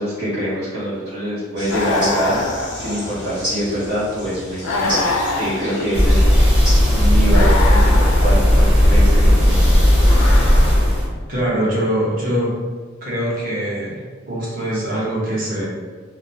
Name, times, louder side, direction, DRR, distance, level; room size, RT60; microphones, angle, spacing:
voice 1, 0.0-2.4 2.8-5.0 5.4-6.3 6.9-9.7, equal, 85° right, -11 dB, 0.8 m, -24 dB
sound 1, 1.5-7.0, equal, 20° right, 1.4 m, -31 dB
sound 2, 1.7-3.4 4.6-6.2 7.3-8.7 10.0-11.1, left 2 dB, 80° left, 0.3 m, -25 dB
sound 3, 5.9-11.1, equal, 5° right, 0.8 m, -14 dB
voice 2, 11.3-12.5 13.0-15.6, right 1 dB, 45° right, -7 dB, 0.9 m, -23 dB
2.9 x 2.0 x 2.6 m, 1.5 s
head